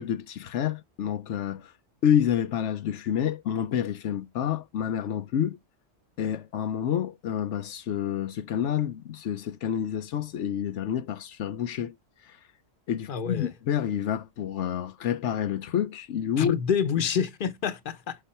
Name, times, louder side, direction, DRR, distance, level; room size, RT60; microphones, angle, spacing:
voice 1, 0.0-1.7 2.0-5.6 6.2-11.9 12.2-12.4 12.9-16.5, left 9 dB, 85° left, 1.0 m, -28 dB
voice 2, 13.1-13.5 16.4-18.2, left 7 dB, 50° left, 1.1 m, -27 dB
6.7 x 5.0 x 4.3 m
omnidirectional pair, 1.2 m